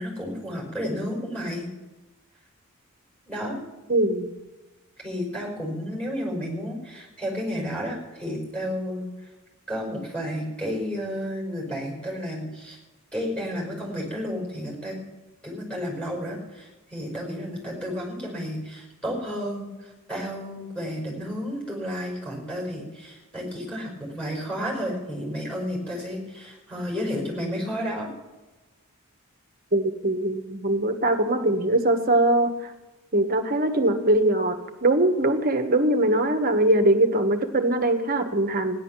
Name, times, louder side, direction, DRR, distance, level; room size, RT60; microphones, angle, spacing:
voice 1, 0.0-1.7 3.3-3.6 5.0-9.0 9.7-12.8 13.1-15.0 15.4-28.1, equal, 5° left, -2 dB, 5.4 m, -32 dB
voice 2, 3.9-4.3 29.7-32.7 33.1-38.8, right 1 dB, 40° right, 6 dB, 1.3 m, -22 dB
16.0 x 11.0 x 7.3 m, 1.1 s
head